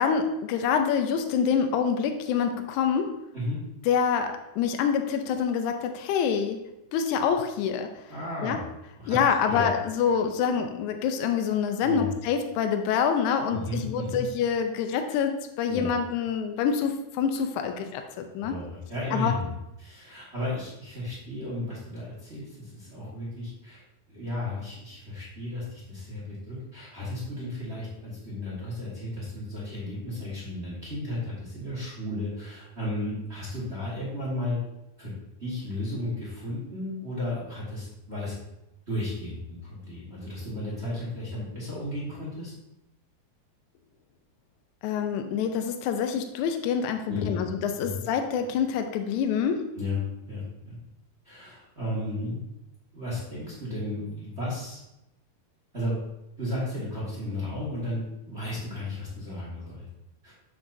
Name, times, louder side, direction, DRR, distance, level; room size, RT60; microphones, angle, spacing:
voice 1, 0.0-3.2 3.8-6.6 6.9-7.9 8.4-8.6 9.1-18.6 19.1-19.3 44.8-49.7, left 7 dB, 85° left, 6 dB, 1.7 m, -26 dB
voice 2, 8.1-8.6 9.0-9.2 9.5-9.6 11.8-12.1 13.5-14.2 15.7-15.9 18.4-19.5 19.8-23.8 24.1-34.6 35.0-35.1 35.4-38.4 38.9-42.5 47.1-47.4 47.8-48.0 49.7-50.8 51.2-52.5 52.9-54.8 55.7-55.9 56.4-59.8 60.2-60.3, left 1 dB, 40° right, -6 dB, 0.9 m, -34 dB
7.5 x 6.9 x 2.7 m, 0.91 s
omnidirectional pair, 4.2 m